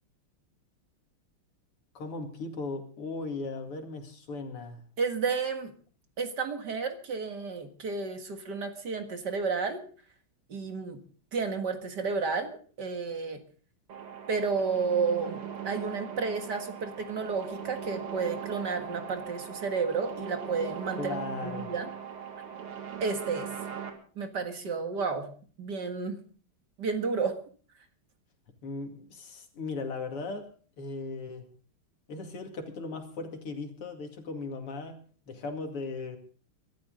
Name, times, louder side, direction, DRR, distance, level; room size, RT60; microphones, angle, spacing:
voice 1, 1.9-4.8 21.0-21.7 28.6-30.5 30.8-31.4 32.1-35.0 35.3-36.2, left 3 dB, 85° left, 5 dB, 3.3 m, -37 dB
voice 2, 5.0-5.7 6.2-9.8 10.5-11.0 11.3-13.4 14.3-15.4 15.6-21.2 21.4-21.9 23.0-23.5 24.2-25.3 25.6-26.2 26.8-27.4, right 5 dB, 50° right, 6 dB, 2.3 m, -31 dB
sound 1, 13.9-23.9, right 8 dB, 80° right, 3.1 m, -40 dB
23.0 x 13.0 x 3.9 m, 0.41 s
omnidirectional pair, 2.4 m